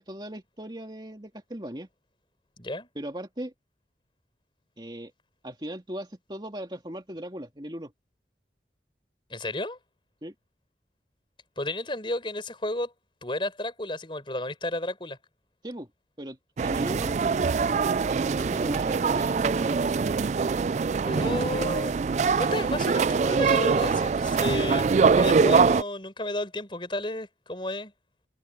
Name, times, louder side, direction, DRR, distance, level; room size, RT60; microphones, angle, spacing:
voice 1, 0.0-1.9 2.9-3.5 4.8-5.1 5.4-7.9 10.2-10.3 15.6-15.9 16.2-17.2 18.1-19.9, equal, 25° right, 2.9 m, -38 dB
voice 2, 2.6-2.9 9.3-9.8 11.6-12.9 13.2-15.2 21.1-22.0 22.4-27.9, left 1 dB, 30° left, 5.3 m, -32 dB
sound 1, 16.6-25.8, right 5 dB, 40° right, 0.3 m, -23 dB
head